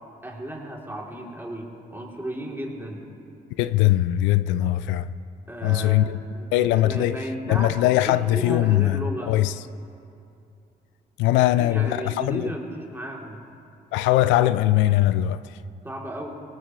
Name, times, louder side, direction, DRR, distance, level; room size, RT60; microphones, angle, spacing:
voice 1, 0.2-3.0 5.5-9.3 11.5-13.4 15.8-16.3, right 1 dB, 10° right, 3.2 m, -34 dB
voice 2, 3.6-5.1 5.6-6.2 6.5-7.2 7.5-9.5 11.2-12.5 13.9-15.4, left 14 dB, 90° left, 0.4 m, -21 dB
19.5 x 19.0 x 3.2 m
supercardioid pair, 60°, 19 cm